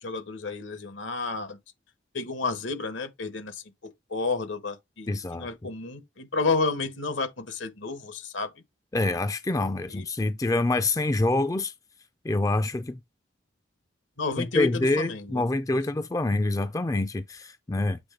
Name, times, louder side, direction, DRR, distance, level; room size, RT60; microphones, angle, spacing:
voice 1, 0.0-1.6 2.1-8.5 9.9-10.0 14.2-15.5, left 4 dB, 80° left, 1.2 m, -31 dB
voice 2, 5.1-5.5 8.9-11.7 12.2-13.0 14.4-18.0, left 2 dB, 20° left, 0.4 m, -26 dB
7.9 x 3.3 x 3.8 m
head